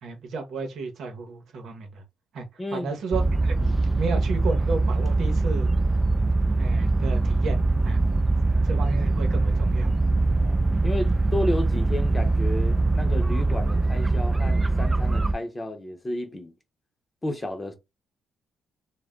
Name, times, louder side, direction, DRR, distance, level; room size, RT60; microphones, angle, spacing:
voice 1, 0.0-2.0 2.3-3.6 4.0-5.7 6.6-8.2 8.6-9.9 10.2-10.3, right 4 dB, 70° right, 0.9 m, -33 dB
voice 2, 2.6-2.9 3.6-3.9 10.4-16.5 17.2-17.7, left 1 dB, 20° left, 0.7 m, -32 dB
sound 1, 3.1-15.3, right 2 dB, 20° right, 0.3 m, -22 dB
2.3 x 2.1 x 3.6 m
cardioid pair, 90°, 0 cm